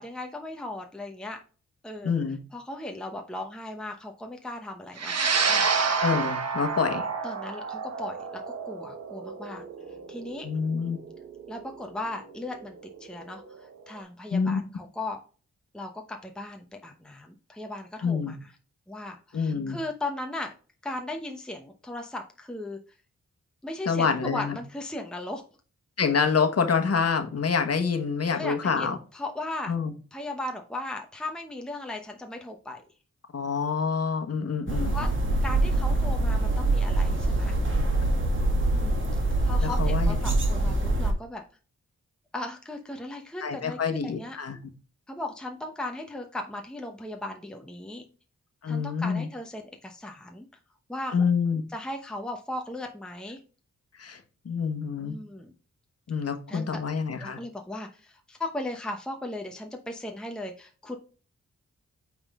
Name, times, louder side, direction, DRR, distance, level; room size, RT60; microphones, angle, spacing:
voice 1, 0.0-1.4 1.8-2.1 2.5-5.2 5.5-5.6 7.2-10.5 11.5-15.2 15.7-18.5 18.9-20.5 20.8-22.8 23.6-25.4 28.3-29.7 30.1-32.8 34.9-35.1 35.4-37.6 38.7-39.0 39.4-41.4 42.3-44.4 45.1-48.0 48.7-50.5 50.9-51.1 51.7-53.4 55.0-55.5 56.5-56.8 57.2-61.0, left 2 dB, 5° left, 0.9 m, -37 dB
voice 2, 2.0-2.4 6.0-7.1 10.4-11.0 14.3-14.6 18.0-18.3 19.3-19.8 23.9-24.6 26.0-29.0 29.7-29.9 33.3-35.0 39.6-40.1 43.4-44.6 48.6-49.3 51.1-51.6 54.0-55.2 56.1-57.4, left 5 dB, 55° left, 1.3 m, -27 dB
sound 1, 5.0-13.5, right 5 dB, 60° right, 1.1 m, -29 dB
sound 2, 34.7-41.1, right 2 dB, 45° right, 1.9 m, -24 dB
8.7 x 3.8 x 3.6 m
wide cardioid pair, 90°, 29 cm